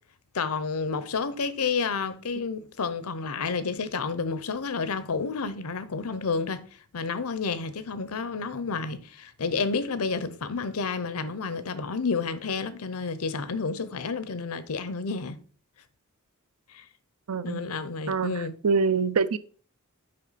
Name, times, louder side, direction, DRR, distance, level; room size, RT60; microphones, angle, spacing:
voice 1, 0.3-6.7 6.9-15.4 16.7-16.8 17.4-18.6, left 4 dB, 85° left, 0.7 m, -30 dB
voice 2, 17.3-17.7 18.1-18.4 18.6-19.4, right 5 dB, 85° right, 0.5 m, -25 dB
7.6 x 5.3 x 4.1 m
head